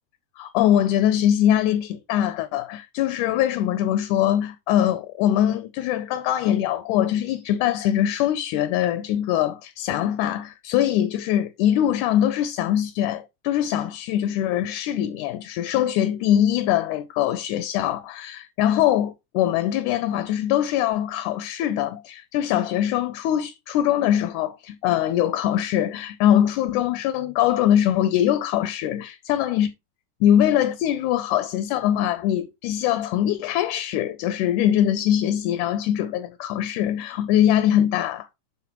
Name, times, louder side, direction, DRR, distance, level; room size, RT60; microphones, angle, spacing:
voice 1, 0.4-29.7 30.2-38.3, left 11 dB, 80° left, 1.8 m, -22 dB
12.0 x 4.0 x 2.9 m
omnidirectional pair, 3.8 m